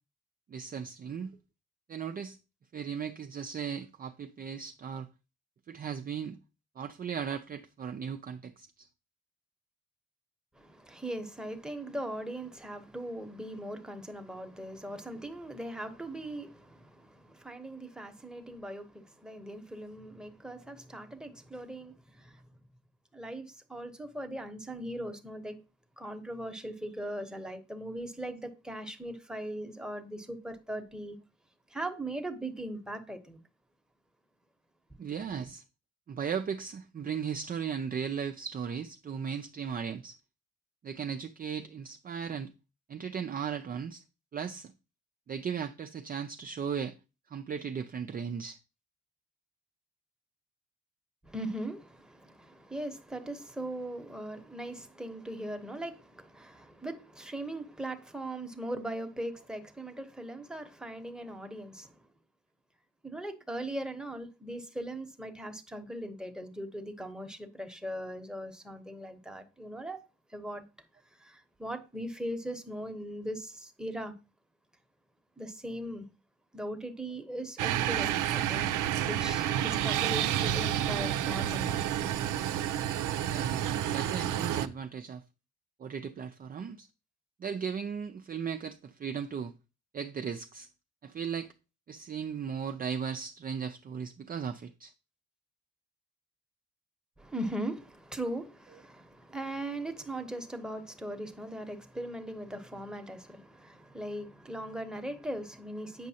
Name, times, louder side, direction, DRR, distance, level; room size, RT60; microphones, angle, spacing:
voice 1, 0.5-1.4 1.9-2.4 2.7-5.1 5.7-6.4 6.8-8.9 35.0-35.6 36.1-40.2 40.8-42.5 42.9-44.0 44.3-44.7 45.3-47.0 47.3-48.6 83.3-85.2 85.8-86.9 87.4-89.5 89.9-90.7 91.0-91.5 91.9-94.9, right 7 dB, 30° right, 0.4 m, -36 dB
voice 2, 10.5-22.4 23.1-25.6 26.0-31.2 31.7-33.4 51.2-62.0 63.0-70.0 70.3-70.6 71.2-74.2 75.4-76.1 76.5-78.7 79.1-81.8 97.2-106.1, right 1 dB, ahead, 1.0 m, -39 dB
sound 1, 77.6-84.7, right 11 dB, 80° right, 0.6 m, -30 dB
8.4 x 5.1 x 2.8 m
cardioid pair, 90°, 30 cm